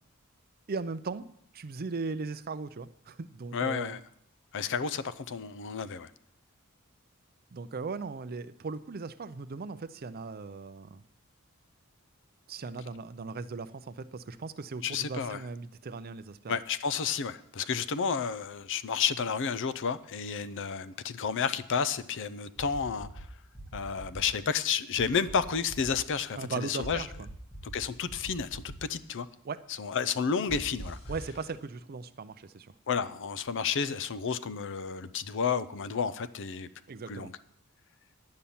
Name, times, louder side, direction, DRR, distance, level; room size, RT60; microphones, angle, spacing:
voice 1, 0.7-1.3 1.5-4.0 7.5-11.0 12.5-16.6 26.4-27.3 29.4-29.6 31.1-32.7 36.9-37.3, right 4 dB, 45° right, 13 dB, 0.5 m, -38 dB
voice 2, 3.5-4.0 4.5-6.1 14.8-15.4 16.5-23.3 23.7-27.0 27.6-29.3 29.8-31.0 32.9-36.7 37.1-37.3, left 6 dB, 60° left, 15 dB, 0.5 m, -31 dB
sound 1, 22.6-23.2 23.5-24.2 25.0-25.9 26.8-27.7 28.1-28.7 30.5-31.3, right 1 dB, 25° left, 3.5 m, -43 dB
10.5 x 5.6 x 8.6 m, 0.71 s
head